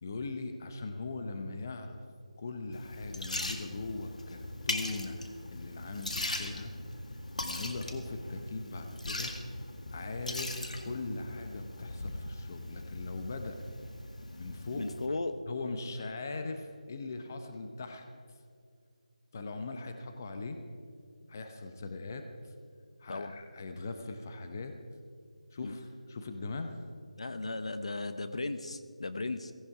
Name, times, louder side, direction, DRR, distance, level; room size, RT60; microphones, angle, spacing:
voice 1, 0.0-2.0 2.4-5.2 5.5-6.7 7.4-9.3 9.9-13.6 14.4-14.9 15.5-18.0 19.3-20.6 21.3-22.5 23.0-24.8 25.5-26.7, left 3 dB, 25° left, 6 dB, 0.8 m, -40 dB
Liquid, 2.7-15.1, left 2 dB, 75° left, 1.9 m, -40 dB
voice 2, 14.7-15.3 23.1-23.3 25.6-25.8 27.2-29.5, left 2 dB, 55° left, 11 dB, 0.8 m, -36 dB
17.0 x 15.0 x 4.9 m, 2.2 s
figure-of-eight pair, 175°, 4 cm